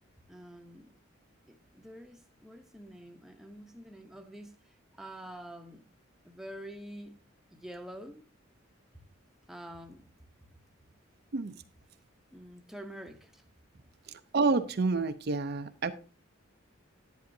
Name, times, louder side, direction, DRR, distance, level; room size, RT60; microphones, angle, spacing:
voice 1, 0.3-0.9 1.5-5.8 6.2-7.2 7.5-8.2 8.9-9.0 9.5-10.0 12.3-13.4, right 1 dB, ahead, 0.8 m, -47 dB
voice 2, 14.3-15.9, right 3 dB, 50° right, 0.5 m, -28 dB
10.5 x 9.2 x 2.7 m
head